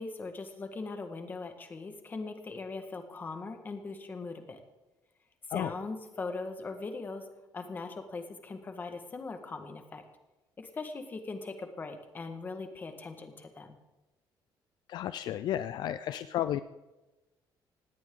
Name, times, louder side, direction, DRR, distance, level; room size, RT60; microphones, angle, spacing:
voice 1, 0.0-4.6 5.5-7.3 7.5-10.0 10.6-13.8, left 3 dB, 20° left, 6 dB, 1.6 m, -40 dB
voice 2, 14.9-16.6, left 11 dB, 55° left, 12 dB, 0.5 m, -32 dB
19.5 x 16.5 x 3.8 m, 1.1 s
cardioid pair, 180°, 9 cm